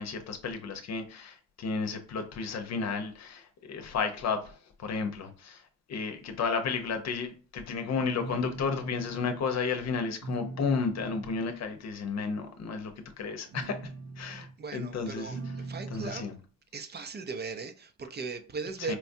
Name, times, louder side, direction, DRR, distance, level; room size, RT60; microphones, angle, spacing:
voice 1, 0.0-5.6 5.9-13.9 14.2-15.4 15.9-16.3 18.9-19.0, left 5 dB, 60° left, 0.8 m, -33 dB
sound 1, 8.1-9.4 10.2-11.4 13.3-14.5 15.0-16.3, right 3 dB, 60° right, 1.0 m, -41 dB
voice 2, 14.3-16.2 16.7-19.0, right 4 dB, 35° right, 0.6 m, -38 dB
4.3 x 2.3 x 2.6 m
cardioid pair, 90°, 30 cm